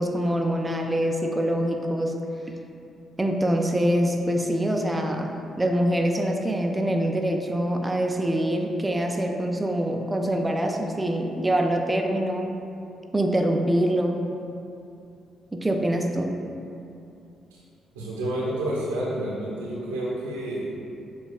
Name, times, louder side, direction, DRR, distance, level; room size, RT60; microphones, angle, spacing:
voice 1, 0.0-2.2 3.2-12.6 13.1-14.3 15.5-16.4, right 1 dB, 15° right, 2 dB, 0.3 m, -24 dB
voice 2, 17.9-20.7, right 1 dB, 80° right, -6 dB, 0.6 m, -29 dB
6.6 x 2.3 x 2.3 m, 2.6 s
hypercardioid pair, 45°, 0 cm